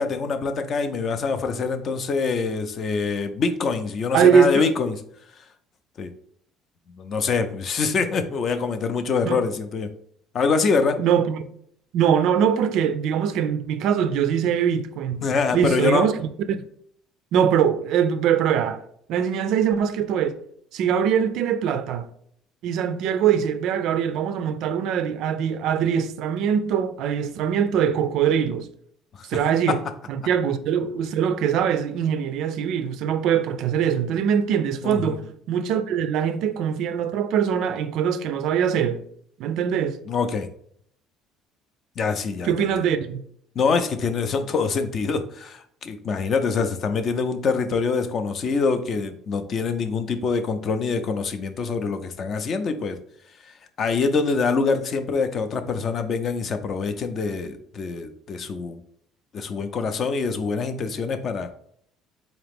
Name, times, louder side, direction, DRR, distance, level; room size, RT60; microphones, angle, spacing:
voice 1, 0.0-5.0 5.4-5.5 6.0-6.1 7.0-9.9 10.3-11.0 15.2-16.1 29.1-29.4 29.7-29.8 34.8-35.2 40.1-40.5 42.0-42.7 43.6-53.0 53.4-58.8 59.3-61.5, left 4 dB, 40° left, 0.4 m, -25 dB
voice 2, 4.1-4.7 9.3-9.4 11.0-11.4 11.9-15.2 15.5-16.1 16.5-16.6 17.3-18.8 19.1-20.4 20.7-22.1 22.6-28.7 29.2-29.8 30.1-39.0 39.4-40.0 42.4-43.2, right 8 dB, 60° right, 0.3 m, -22 dB
3.9 x 2.9 x 3.4 m
cardioid pair, 150°, 0 cm